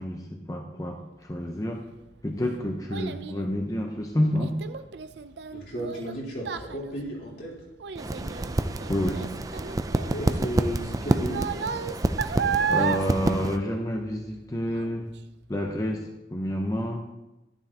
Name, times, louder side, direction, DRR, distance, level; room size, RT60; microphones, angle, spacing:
voice 1, 0.0-1.8 2.2-4.6 8.9-9.4 12.7-15.1 15.5-17.1, equal, 20° left, 1 dB, 0.8 m, -29 dB
Child speech kid speaking, 1.7-14.4 14.7-15.2 15.7-15.8, right 6 dB, 70° right, 0.5 m, -33 dB
voice 2, 5.5-7.6 9.9-11.5, equal, 75° left, -5 dB, 4.0 m, -34 dB
sound 1, 8.0-13.6, right 2 dB, 20° right, 0.4 m, -28 dB
11.5 x 10.5 x 2.9 m, 0.99 s
head